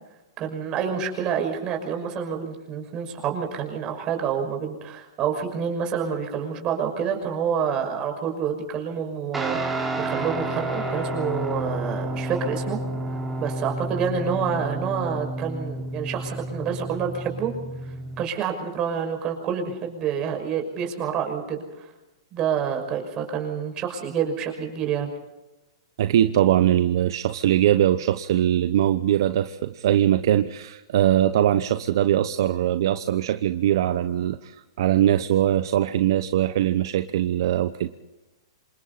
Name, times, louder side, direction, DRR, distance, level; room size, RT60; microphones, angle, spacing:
voice 1, 0.4-12.8 13.4-17.5 18.2-21.9 22.3-25.1, right 7 dB, 30° right, 4 dB, 6.0 m, -28 dB
Guitar, 9.3-18.3, right 1 dB, 5° right, 4.5 m, -30 dB
voice 2, 26.0-38.0, right 11 dB, 65° right, 10 dB, 1.0 m, -21 dB
27.5 x 25.5 x 4.2 m, 1.0 s
hypercardioid pair, 140°, 3 cm